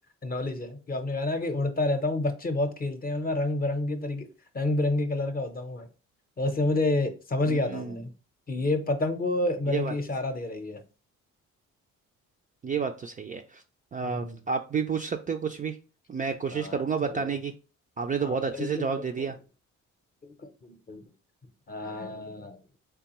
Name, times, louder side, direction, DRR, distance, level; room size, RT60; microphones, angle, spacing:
voice 1, 0.2-4.3 4.5-5.9 6.4-8.1 8.5-10.8 14.0-14.4 16.5-17.3 18.2-19.3 20.2-21.0 21.7-22.6, left 2 dB, 30° left, 0.7 m, -29 dB
voice 2, 7.5-8.0 9.7-9.9 12.6-13.6 13.9-15.8 16.1-17.5 18.0-19.4, right 6 dB, 25° right, 0.4 m, -30 dB
3.5 x 3.3 x 3.0 m
cardioid pair, 90°, 30 cm